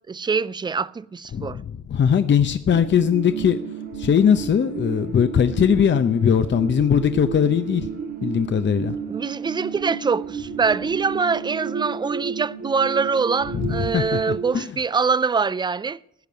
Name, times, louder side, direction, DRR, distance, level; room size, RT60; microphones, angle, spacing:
voice 1, 0.1-1.6 9.1-16.0, right 5 dB, 15° right, 0.4 m, -24 dB
voice 2, 1.3-3.6 4.0-7.9 8.2-9.0 13.5-14.0 14.5-14.6, left 8 dB, 40° left, 0.7 m, -20 dB
sound 1, 2.7-14.6, right 6 dB, 45° right, 2.0 m, -32 dB
15.5 x 5.3 x 9.4 m
cardioid pair, 90°, 30 cm